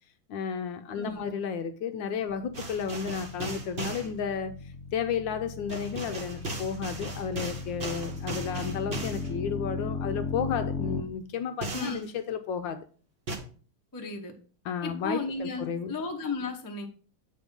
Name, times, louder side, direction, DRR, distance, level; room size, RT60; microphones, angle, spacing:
voice 1, 0.3-12.9 14.6-15.9, left 7 dB, 75° left, 1.2 m, -33 dB
voice 2, 0.9-1.2 11.7-12.1 13.9-14.3 14.8-16.9, left 3 dB, 20° left, 0.4 m, -34 dB
sound 1, 2.3-11.0, left 4 dB, 55° left, 0.7 m, -37 dB
sound 2, 2.5-4.1 5.7-9.3 11.6-12.0 13.3-13.4, right 2 dB, 40° right, 1.0 m, -37 dB
8.4 x 3.5 x 5.2 m
omnidirectional pair, 2.3 m